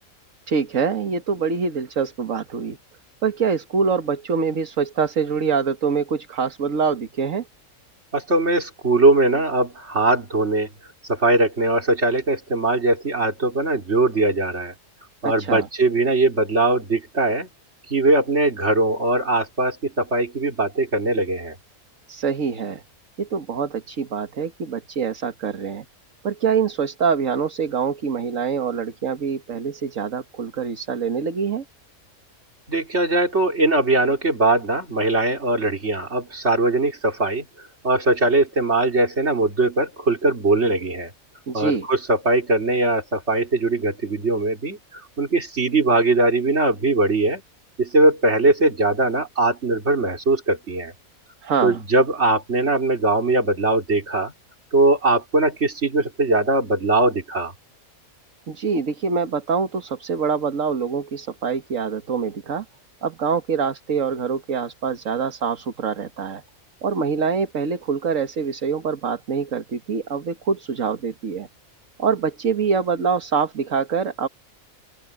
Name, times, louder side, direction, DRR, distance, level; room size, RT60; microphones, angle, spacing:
voice 1, 0.5-2.8 3.2-7.5 15.2-15.7 22.1-22.8 23.2-25.9 26.2-31.6 41.5-41.9 51.4-51.8 58.5-62.7 63.0-66.4 66.8-71.5 72.0-74.3, right 6 dB, 65° right, 1.8 m, -25 dB
voice 2, 8.1-10.7 11.1-14.7 15.2-17.5 17.9-21.6 32.7-37.5 37.8-41.1 41.5-47.4 47.8-50.9 51.6-54.3 54.7-57.5, right 2 dB, 50° right, 4.0 m, -20 dB
open air
omnidirectional pair, 1.5 m